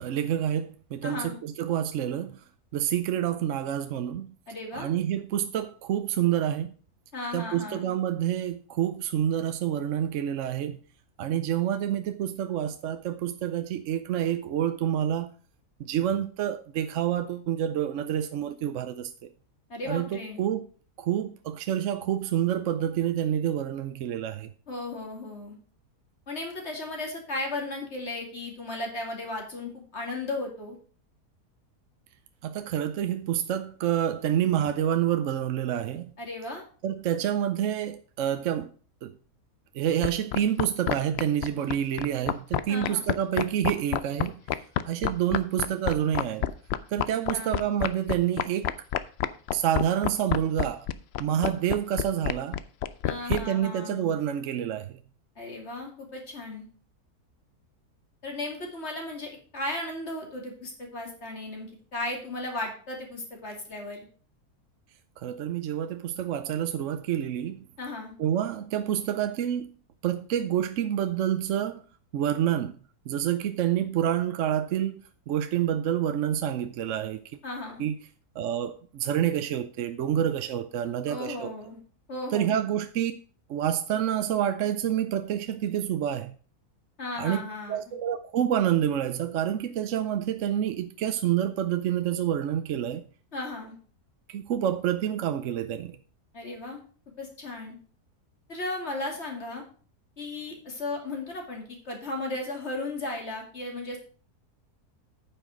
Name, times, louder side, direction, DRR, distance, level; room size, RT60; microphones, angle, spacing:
voice 1, 0.0-2.4 2.7-4.3 4.7-6.7 7.3-10.8 11.2-15.3 15.8-19.3 19.9-20.6 21.0-24.5 32.4-36.1 36.8-38.7 39.0-39.1 39.7-44.4 44.9-46.5 46.9-48.7 49.5-50.9 51.2-52.6 53.3-55.0 65.2-67.6 68.2-69.7 70.0-71.8 72.1-72.8 73.1-75.0 75.3-77.2 77.8-78.0 78.4-81.5 82.3-83.1 83.5-86.3 87.2-93.0 94.3-96.0, right 10 dB, 65° right, 0.8 m, -28 dB
voice 2, 1.0-1.4 4.5-4.9 7.1-7.9 19.7-20.4 24.7-25.6 26.3-30.8 36.2-36.6 42.7-43.1 47.3-47.7 53.0-54.1 55.4-56.6 58.2-64.1 67.8-68.1 77.4-77.8 81.1-81.8 82.1-82.6 87.0-87.8 93.3-93.7 96.3-96.8 97.2-97.8 98.5-99.6 100.2-104.0, left 2 dB, 45° left, 2.7 m, -35 dB
sound 1, 40.0-53.4, left 11 dB, 70° left, 0.6 m, -27 dB
9.3 x 5.8 x 5.1 m
omnidirectional pair, 1.6 m